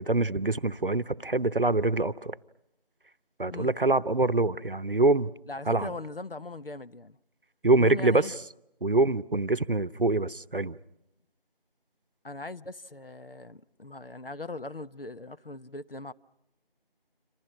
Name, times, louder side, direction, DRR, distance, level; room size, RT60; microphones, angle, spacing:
voice 1, 0.0-2.3 3.4-5.3 5.7-5.9 7.6-8.3 8.8-10.8, right 2 dB, 60° right, 0.9 m, -25 dB
voice 2, 5.5-7.2 7.7-8.3 12.2-16.1, left 2 dB, 70° left, 0.9 m, -40 dB
28.5 x 26.5 x 6.3 m
figure-of-eight pair, 175°, 30 cm